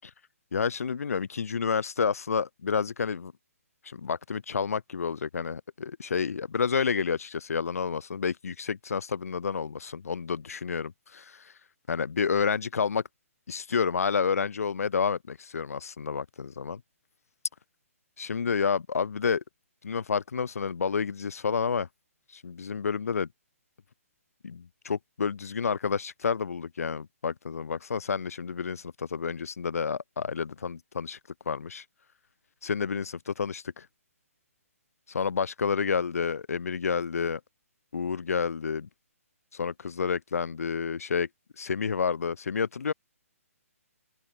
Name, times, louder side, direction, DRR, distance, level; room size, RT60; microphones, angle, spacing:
voice 1, 0.5-3.3 3.8-11.5 11.9-13.0 13.5-16.8 18.2-19.4 19.8-21.9 22.3-23.3 24.4-31.2 31.4-31.8 32.6-33.9 35.1-37.4 37.9-38.9 39.5-41.3 41.6-42.9, left 6 dB, 75° left, 3.0 m, -29 dB
open air
hypercardioid pair, 160°, 8 cm